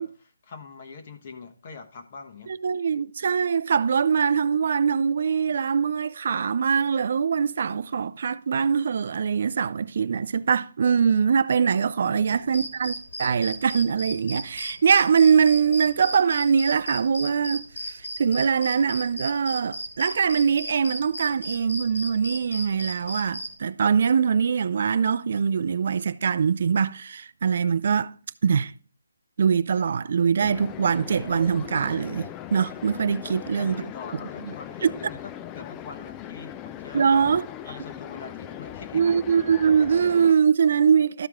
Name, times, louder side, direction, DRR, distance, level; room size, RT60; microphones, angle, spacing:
voice 1, 0.0-2.5 12.0-12.7 33.2-37.4 37.7-39.2, left 5 dB, 35° left, 1.2 m, -43 dB
voice 2, 2.5-12.9 13.2-28.1 28.4-28.7 29.4-33.9 34.8-34.9 36.9-37.4 38.9-41.3, right 6 dB, 50° right, 0.4 m, -23 dB
sound 1, 12.4-23.5, equal, 80° left, 2.8 m, -35 dB
sound 2, 30.4-40.3, left 11 dB, 15° left, 0.3 m, -39 dB
13.0 x 4.6 x 3.6 m
hypercardioid pair, 165°, 0 cm